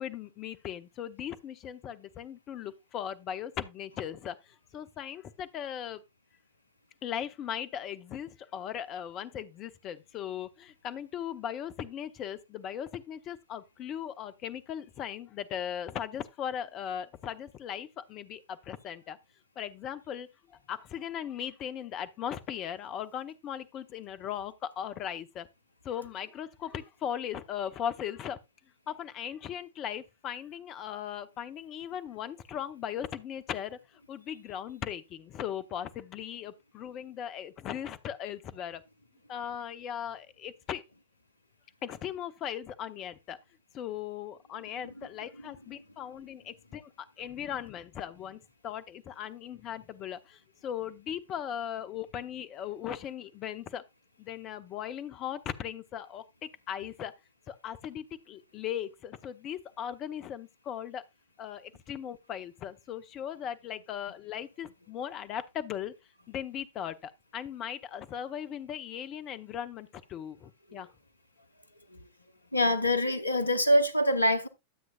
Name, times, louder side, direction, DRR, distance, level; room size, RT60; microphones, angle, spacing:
voice 1, 0.0-4.4 4.7-6.0 7.0-19.2 19.6-20.3 20.7-25.5 25.8-28.4 28.9-33.8 34.1-38.8 39.3-40.8 41.8-43.4 43.7-53.8 54.2-57.1 57.5-61.0 61.4-65.9 66.3-70.9, left 9 dB, 35° left, 0.9 m, -38 dB
voice 2, 72.5-74.5, left 1 dB, 80° left, 0.9 m, -25 dB
12.5 x 7.8 x 2.3 m
figure-of-eight pair, 90°, 0 cm